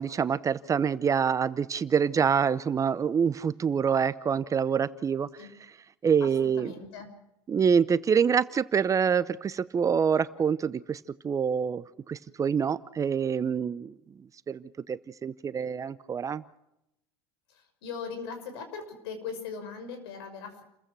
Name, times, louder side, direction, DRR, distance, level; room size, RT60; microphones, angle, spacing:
voice 1, 0.0-5.5 6.0-6.7 7.5-13.9 14.5-16.4, right 7 dB, 25° right, 16 dB, 0.8 m, -26 dB
voice 2, 6.2-7.1 17.8-20.6, left 5 dB, 80° left, 6 dB, 6.1 m, -39 dB
30.0 x 15.0 x 6.2 m, 0.85 s
supercardioid pair, 105°, 13 cm